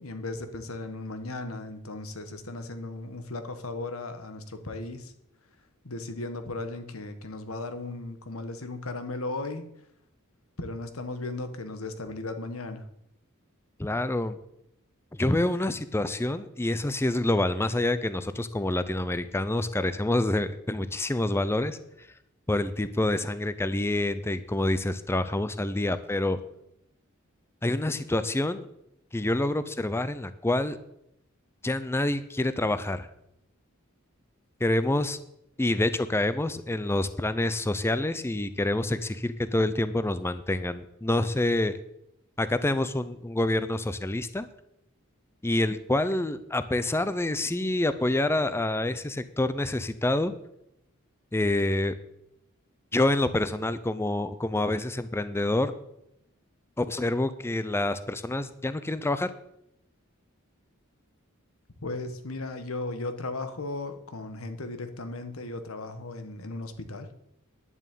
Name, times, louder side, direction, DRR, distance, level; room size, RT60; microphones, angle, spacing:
voice 1, 0.0-5.1 5.8-9.7 10.6-12.9 61.8-67.1, left 2 dB, 85° left, 9 dB, 1.4 m, -36 dB
voice 2, 13.8-14.4 15.1-22.1 22.5-26.4 27.6-28.7 29.1-30.8 31.6-33.1 34.6-35.2 35.6-41.8 42.4-44.5 45.4-50.3 51.3-51.9 52.9-55.7 56.8-59.3, left 1 dB, 10° left, 12 dB, 0.5 m, -27 dB
10.5 x 7.2 x 8.4 m, 0.79 s
head